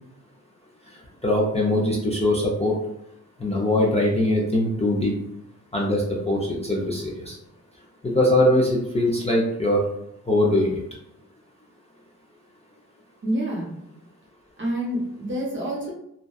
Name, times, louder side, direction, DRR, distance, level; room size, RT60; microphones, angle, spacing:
voice 1, 1.2-2.8 3.4-5.1 5.7-7.4 8.0-9.8 10.3-10.8, left 1 dB, 20° left, -4 dB, 0.4 m, -22 dB
voice 2, 13.2-13.7 14.6-15.9, right 1 dB, 35° right, -3 dB, 0.7 m, -27 dB
2.6 x 2.1 x 2.2 m, 0.80 s
wide cardioid pair, 125°, 32 cm